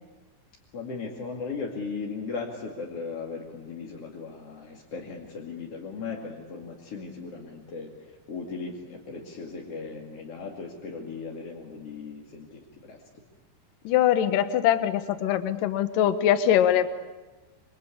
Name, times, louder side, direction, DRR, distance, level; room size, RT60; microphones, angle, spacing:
voice 1, 0.7-13.0, left 4 dB, 40° left, -2 dB, 2.7 m, -37 dB
voice 2, 13.8-16.9, left 10 dB, 65° left, 11 dB, 2.4 m, -22 dB
27.0 x 24.5 x 8.6 m, 1.2 s
omnidirectional pair, 5.1 m